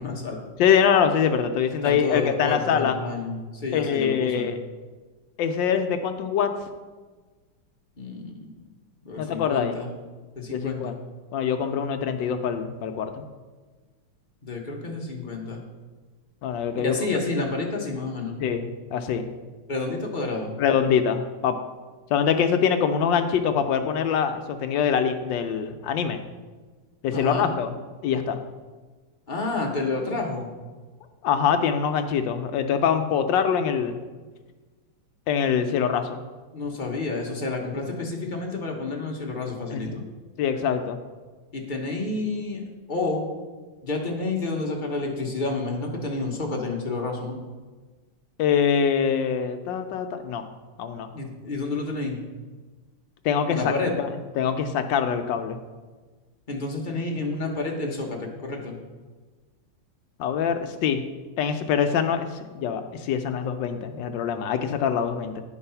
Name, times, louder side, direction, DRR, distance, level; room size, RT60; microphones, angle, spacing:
voice 1, 0.0-0.4 1.8-4.5 8.0-8.5 9.0-9.9 10.4-10.9 14.4-15.6 16.8-18.4 19.7-20.5 27.1-27.5 29.3-30.5 36.5-40.0 41.5-43.2 43.8-47.4 51.1-52.2 53.5-53.9 56.5-58.7, left 3 dB, 45° left, 0 dB, 0.6 m, -29 dB
voice 2, 0.6-3.0 3.7-4.6 5.4-6.5 9.2-9.8 10.5-10.9 11.3-13.2 16.4-16.9 18.4-19.3 20.6-21.6 22.1-26.2 27.0-27.7 28.0-28.4 31.2-34.0 35.3-36.2 39.7-39.8 40.4-41.0 48.4-50.4 50.8-51.1 53.2-53.7 54.4-55.6 60.2-61.0 61.4-62.3 62.5-65.4, left 7 dB, 75° left, 7 dB, 1.1 m, -24 dB
9.6 x 4.7 x 5.6 m, 1.3 s
omnidirectional pair, 2.4 m